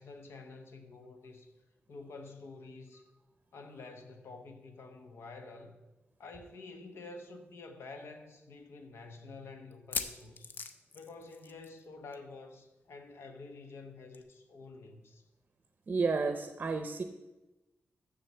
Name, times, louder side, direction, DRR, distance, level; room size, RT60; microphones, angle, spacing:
voice 1, 0.0-1.5 1.9-3.0 3.5-5.7 6.2-10.5 10.9-15.2, left 3 dB, 85° left, 1.2 m, -49 dB
sound 1, 7.0-7.1 7.4-7.5 8.1-8.2 9.7-11.8 12.1-12.3 12.6-12.7 14.1-14.2, left 4 dB, 50° left, 0.7 m, -40 dB
voice 2, 15.9-17.0, right 4 dB, 40° right, 0.6 m, -31 dB
7.7 x 7.1 x 6.9 m
wide cardioid pair, 150°, 4 cm